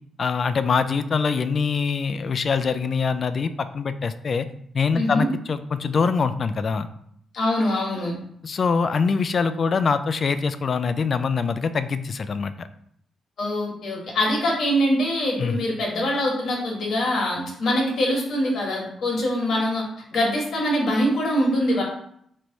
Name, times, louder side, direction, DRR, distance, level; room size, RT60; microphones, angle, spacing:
voice 1, 0.2-4.5 4.7-6.9 8.4-12.7 15.4-15.6, left 5 dB, 55° left, 11 dB, 0.4 m, -24 dB
voice 2, 4.9-5.3 7.3-8.1 13.4-19.8 20.1-21.8, left 1 dB, 70° left, -2 dB, 1.5 m, -23 dB
3.2 x 3.2 x 3.9 m, 0.68 s
supercardioid pair, 55°, 0 cm